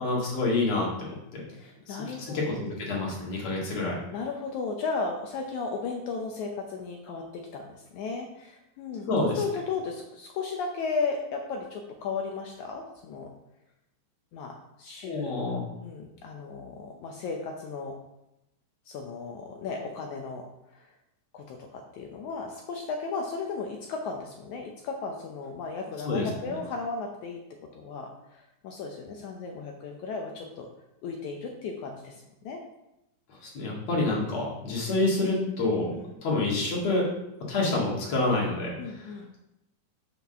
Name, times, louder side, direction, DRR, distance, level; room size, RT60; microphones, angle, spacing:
voice 1, 0.0-1.4 1.9-4.0 9.1-9.3 15.0-15.6 26.0-26.3 33.3-35.9 36.2-37.1 37.4-39.1, left 2 dB, 50° left, -4 dB, 2.9 m, -28 dB
voice 2, 1.5-2.4 4.1-13.3 14.3-15.3 15.8-18.0 18.9-20.9 21.3-27.4 27.7-30.7 31.0-32.6 35.9-36.1 38.8-39.3, left 4 dB, 75° left, 2 dB, 1.8 m, -35 dB
5.9 x 5.9 x 5.6 m, 0.89 s
omnidirectional pair, 4.2 m